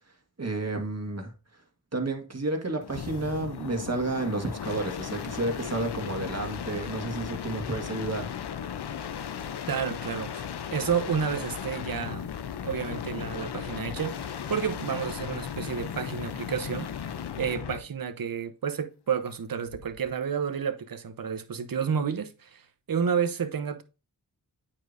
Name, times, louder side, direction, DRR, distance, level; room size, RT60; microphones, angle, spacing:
voice 1, 0.4-1.6 1.9-8.3, right 2 dB, 40° right, 1.7 m, -31 dB
sound 1, 2.8-17.9 19.6-20.1, left 8 dB, 80° left, 0.6 m, -36 dB
voice 2, 9.7-12.3 12.6-16.9 17.4-22.6 22.9-23.8, right 7 dB, 60° right, 0.8 m, -30 dB
8.7 x 4.8 x 2.6 m
cardioid pair, 45°, 39 cm